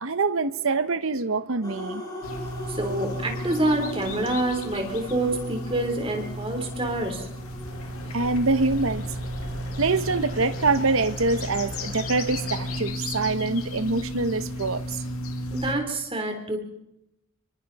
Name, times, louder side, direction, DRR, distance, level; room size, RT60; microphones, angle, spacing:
voice 1, 0.0-2.0 8.1-9.0 9.8-15.0, right 3 dB, 70° right, 12 dB, 1.0 m, -25 dB
sound 1, 1.6-10.7, left 1 dB, 15° left, 5.0 m, -41 dB
sound 2, 2.2-15.8, equal, 85° left, 2.1 m, -34 dB
voice 2, 2.7-7.3 15.5-16.6, right 1 dB, 25° right, 3 dB, 3.7 m, -27 dB
sound 3, 7.6-12.8, equal, 60° left, 5.0 m, -40 dB
25.5 x 24.0 x 4.2 m, 0.85 s
head